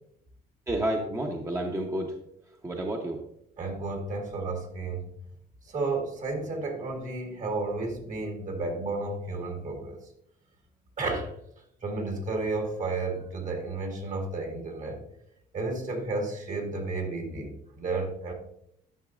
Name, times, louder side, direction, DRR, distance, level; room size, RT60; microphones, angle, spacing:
voice 1, 0.7-2.1 2.6-3.2, right 1 dB, 15° right, 1 dB, 0.9 m, -30 dB
voice 2, 3.6-5.1 5.7-10.0 11.0-11.3 11.8-15.0 15.5-18.3, right 3 dB, 50° right, 2 dB, 1.9 m, -32 dB
11.0 x 5.9 x 2.5 m, 0.73 s
cardioid pair, 110°, 17 cm